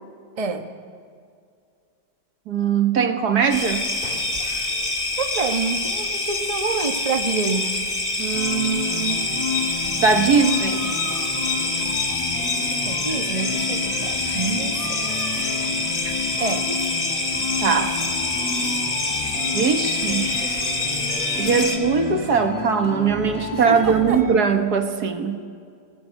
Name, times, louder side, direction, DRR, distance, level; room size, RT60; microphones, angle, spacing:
voice 1, 0.4-0.7 5.2-7.7 12.8-15.1 16.4-16.7 23.5-24.2, right 4 dB, 20° right, 6 dB, 1.1 m, -27 dB
voice 2, 2.5-3.9 8.2-9.4 10.0-11.0 17.6-18.0 19.5-20.6 21.4-25.4, right 6 dB, 60° right, 7 dB, 1.9 m, -21 dB
sound 1, 3.5-21.8, left 2 dB, 30° left, 2.1 m, -26 dB
sound 2, 8.3-24.3, left 4 dB, 5° left, 4.6 m, -31 dB
21.0 x 20.0 x 9.4 m, 2.3 s
omnidirectional pair, 2.0 m